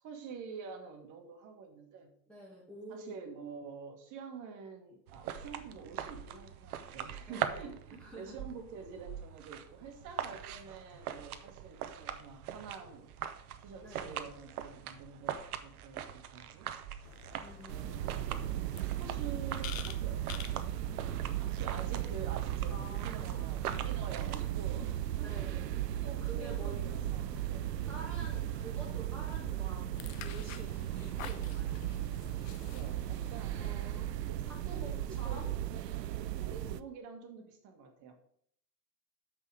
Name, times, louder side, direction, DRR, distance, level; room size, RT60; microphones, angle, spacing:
voice 1, 0.0-2.1 2.9-13.1 13.6-16.7 17.7-20.2 20.5-20.8 21.4-25.5 26.0-27.7 32.4-33.6 34.1-35.5 36.4-38.1, right 5 dB, 40° right, 5 dB, 1.7 m, -48 dB
voice 2, 2.3-3.2 7.3-7.6 8.0-8.3 13.8-14.3 17.4-18.0 22.7-23.6 25.2-25.7 26.2-26.8 27.9-29.9 30.2-30.7 31.0-31.8 33.6-34.1 34.4-35.5, right 1 dB, ahead, -7 dB, 2.0 m, -48 dB
sound 1, 5.1-24.4, right 9 dB, 65° right, 0.9 m, -42 dB
sound 2, 17.0-33.8, left 9 dB, 55° left, 0.9 m, -51 dB
sound 3, 17.7-36.8, right 13 dB, 85° right, 0.5 m, -36 dB
6.9 x 5.5 x 5.0 m, 0.65 s
hypercardioid pair, 100°, 48 cm